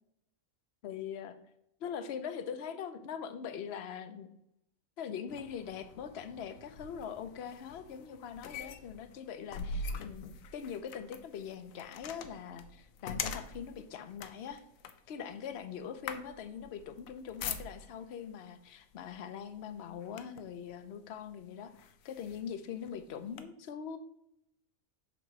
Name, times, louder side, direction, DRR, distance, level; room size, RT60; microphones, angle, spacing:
voice 1, 0.8-1.4 1.8-4.3 5.0-14.6 15.1-24.0, left 7 dB, 60° left, 10 dB, 0.8 m, -42 dB
sound 1, 5.3-18.1 19.0-19.2 19.6-20.6 21.2-21.3 21.8-23.4, left 4 dB, 90° left, 1.0 m, -43 dB
7.2 x 3.0 x 5.9 m, 0.80 s
omnidirectional pair, 1.4 m